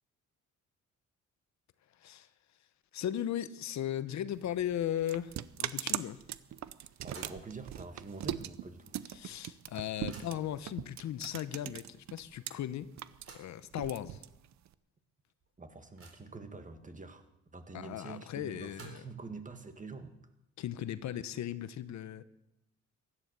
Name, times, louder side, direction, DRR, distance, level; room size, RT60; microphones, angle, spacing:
voice 1, 2.9-5.3 5.6-6.2 9.1-12.9 13.3-14.2 17.7-19.0 20.6-22.2, left 11 dB, 65° left, 14 dB, 0.8 m, -37 dB
sound 1, 4.3-12.5 12.8-14.7, right 12 dB, 65° right, 0.8 m, -40 dB
sound 2, 6.8-7.5 7.9-8.0 9.1-9.2 9.5-10.6 11.4-11.5 11.9-12.0 12.9-13.6 14.3-14.4 14.8-14.9 15.4-16.4 18.4-19.3, right 4 dB, 45° right, 3.9 m, -56 dB
voice 2, 7.0-9.0 15.6-17.2 17.5-20.1, right 3 dB, 25° right, 7 dB, 2.0 m, -46 dB
16.0 x 12.0 x 6.9 m, 0.88 s
cardioid pair, 90°, 30 cm